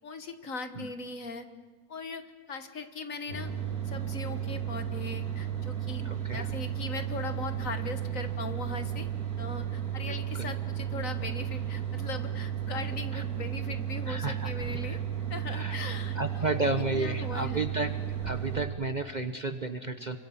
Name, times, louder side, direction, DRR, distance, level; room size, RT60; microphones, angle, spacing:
voice 1, 0.0-1.5 1.9-3.5 3.9-9.1 9.4-15.0 15.3-17.6, left 3 dB, 55° left, 8 dB, 1.8 m, -39 dB
sound 1, 3.3-18.7, right 10 dB, 65° right, 2.6 m, -34 dB
voice 2, 6.0-6.4 10.3-10.5 13.1-13.2 14.1-14.5 14.9-15.0 15.5-15.8 16.1-17.9 18.2-20.2, right 2 dB, 30° right, 7 dB, 1.0 m, -32 dB
28.5 x 25.0 x 7.2 m, 1.5 s
omnidirectional pair, 1.7 m